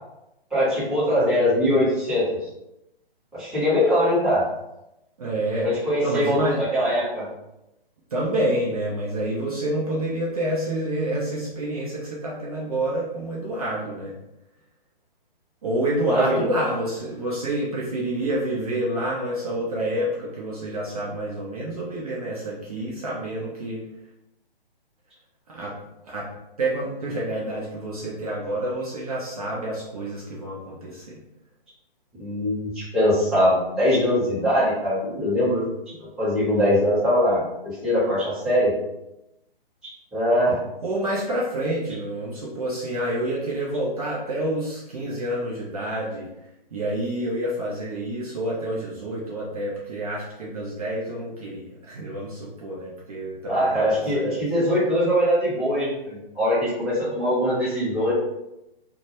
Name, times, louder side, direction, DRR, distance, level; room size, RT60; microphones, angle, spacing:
voice 1, 0.5-2.2 3.3-4.4 5.6-7.2 16.1-16.4 32.2-38.7 40.1-40.6 53.4-58.1, equal, ahead, -13 dB, 0.7 m, -22 dB
voice 2, 5.2-5.7 6.0-6.6 8.1-14.1 15.6-23.8 25.5-25.7 26.0-31.2 40.8-46.3 46.7-54.5, right 1 dB, 40° right, -5 dB, 0.4 m, -28 dB
2.1 x 2.1 x 2.8 m, 0.89 s
figure-of-eight pair, 135°, 30 cm